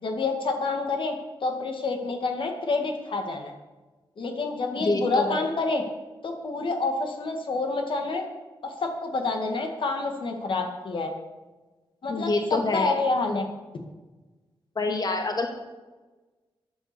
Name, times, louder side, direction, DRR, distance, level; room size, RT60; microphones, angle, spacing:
voice 1, 0.0-1.2 1.4-3.5 4.2-5.8 6.2-8.2 8.6-11.1 12.0-13.5, left 3 dB, 65° left, 3 dB, 2.0 m, -28 dB
voice 2, 4.8-5.4 12.1-12.9 14.8-15.5, left 3 dB, 45° left, 3 dB, 2.0 m, -26 dB
12.5 x 9.7 x 6.9 m, 1.2 s
wide cardioid pair, 90°, 9 cm